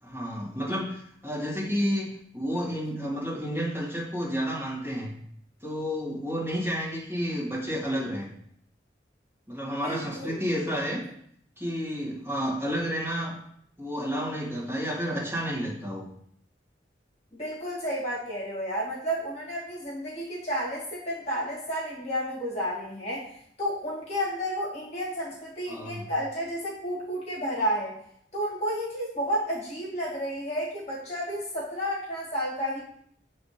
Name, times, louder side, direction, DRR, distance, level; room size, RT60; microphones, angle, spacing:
voice 1, 0.0-5.1 5.6-8.3 9.5-11.0 11.6-13.4 13.8-16.1 25.7-26.0, equal, 15° right, -8 dB, 2.1 m, -31 dB
voice 2, 9.8-10.4 17.3-23.3 23.6-27.9 28.3-32.8, equal, 40° left, -5 dB, 1.9 m, -31 dB
7.8 x 3.4 x 4.3 m, 0.67 s
head